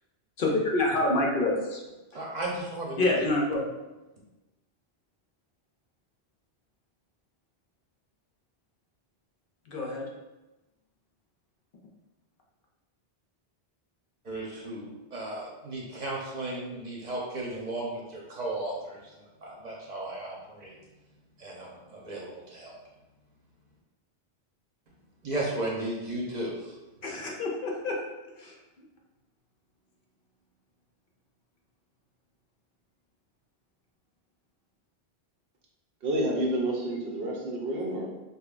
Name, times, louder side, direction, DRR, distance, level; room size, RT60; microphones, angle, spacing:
voice 1, 0.4-1.8 3.0-3.7 9.7-10.1 27.0-28.0 28.4-28.6, left 2 dB, 60° left, -1 dB, 0.8 m, -27 dB
voice 2, 2.1-3.0 14.2-19.0 19.4-20.7 21.4-22.7 25.2-26.7, right 2 dB, 45° right, -4 dB, 0.9 m, -35 dB
voice 3, 36.0-38.1, right 1 dB, 70° right, -1 dB, 0.9 m, -29 dB
5.3 x 2.1 x 2.4 m, 1.1 s
omnidirectional pair, 1.1 m